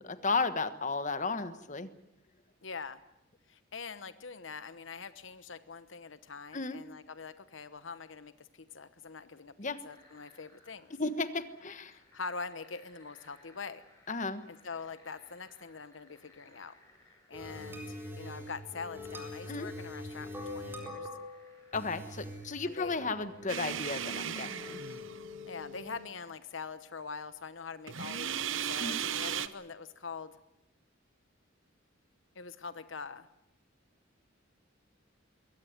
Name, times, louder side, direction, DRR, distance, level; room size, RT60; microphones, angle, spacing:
voice 1, 0.0-1.9 6.5-6.8 9.6-9.8 11.0-12.0 14.1-14.4 19.5-19.7 21.7-24.8 28.8-29.0, left 3 dB, 40° left, 12 dB, 1.3 m, -34 dB
voice 2, 2.6-3.0 3.5-10.9 11.9-13.8 14.5-16.8 17.3-21.1 22.6-23.0 25.4-30.4 32.3-33.3, left 5 dB, 65° left, 13 dB, 1.0 m, -44 dB
sound 1, 9.9-24.1, left 1 dB, 15° left, 6.3 m, -63 dB
sound 2, 17.3-26.0, left 2 dB, 10° right, 4.1 m, -44 dB
sound 3, 23.5-25.5 27.9-29.5, right 9 dB, 70° right, 0.9 m, -36 dB
22.5 x 17.5 x 9.5 m, 0.88 s
head